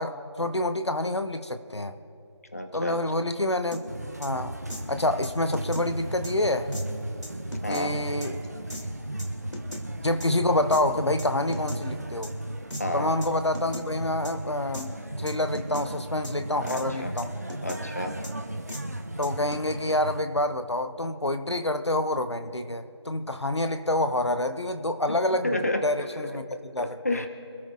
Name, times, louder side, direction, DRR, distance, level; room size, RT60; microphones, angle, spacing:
voice 1, 0.0-2.0 2.7-4.6 4.9-6.7 7.7-8.5 10.0-12.3 12.9-17.3 19.2-25.5 25.8-26.4 26.7-27.0, left 1 dB, 70° left, 9 dB, 1.0 m, -27 dB
voice 2, 2.5-3.0 7.6-7.9 12.8-13.1 16.6-17.1 17.6-18.2 25.4-25.9 26.5-27.3, left 1 dB, 35° left, 6 dB, 1.1 m, -30 dB
sound 1, 3.7-3.8 4.2-4.3 4.7-4.8 5.2-5.9 6.2-6.3 6.7-6.9 7.2-7.8 8.2-8.3 8.7-8.8 9.2-9.8 10.2-10.3 10.7-10.8 11.2-11.8 12.2-12.3 12.7-12.8 13.2-13.3 13.5-13.9 14.2-14.3 14.7-14.9 15.3-15.9 16.2-16.3 16.7-16.9 17.2-17.8 18.2-18.3 18.7-18.8 19.2-19.7, left 1 dB, 90° left, 2.9 m, -38 dB
sound 2, 3.9-20.2, right 1 dB, 35° right, 0.9 m, -36 dB
27.0 x 13.5 x 2.5 m, 2.7 s
figure-of-eight pair, 170°, 15 cm